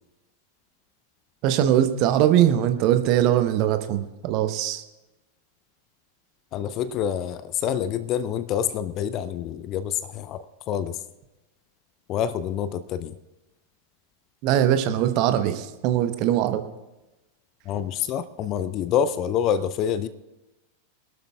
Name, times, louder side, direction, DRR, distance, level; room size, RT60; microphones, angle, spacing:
voice 1, 1.4-4.8 14.4-16.6, right 11 dB, 40° right, 9 dB, 1.0 m, -21 dB
voice 2, 6.5-11.0 12.1-13.1 17.7-20.1, left 9 dB, 35° left, 14 dB, 0.6 m, -27 dB
25.0 x 12.0 x 2.4 m, 1.0 s
figure-of-eight pair, 90°, 0 cm